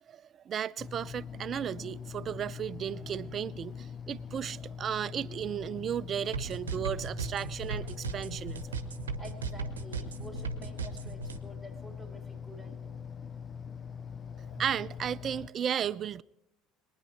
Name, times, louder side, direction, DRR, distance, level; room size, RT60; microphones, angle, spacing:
voice 1, 0.1-8.8 14.5-16.2, right 9 dB, 40° right, 0.4 m, -34 dB
sound 1, 0.8-15.5, left 7 dB, 30° left, 0.6 m, -43 dB
sound 2, 6.3-11.4, right 4 dB, 80° right, 0.8 m, -36 dB
voice 2, 9.2-13.0, equal, 15° left, 2.7 m, -49 dB
22.5 x 9.7 x 4.5 m
figure-of-eight pair, 65°, 0 cm